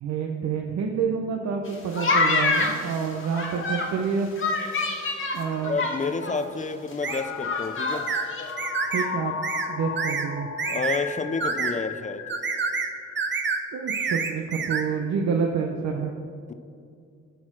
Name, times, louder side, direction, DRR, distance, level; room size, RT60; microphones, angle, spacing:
voice 1, 0.0-4.3 5.3-5.8 8.9-9.4 9.7-10.5 13.7-16.2, right 6 dB, 65° right, 2 dB, 0.9 m, -28 dB
sound 1, 1.6-3.9 4.4-6.3 6.6-6.7 6.9-8.0 8.3-8.5, left 3 dB, 45° left, 1.7 m, -26 dB
voice 2, 5.6-8.1 10.7-12.3 16.5-16.6, left 4 dB, 25° left, 10 dB, 0.6 m, -30 dB
sound 2, 7.0-14.3, left 7 dB, 65° left, 0.8 m, -36 dB
sound 3, 7.0-7.2 8.1-8.3 8.6-9.1 9.4-9.7 10.0-10.3 10.6-11.0 11.4-11.7 12.3-12.9 13.2-13.6 13.9-14.8, right 5 dB, 40° right, 1.0 m, -28 dB
13.0 x 4.5 x 6.0 m, 2.4 s
cardioid pair, 90°, 30 cm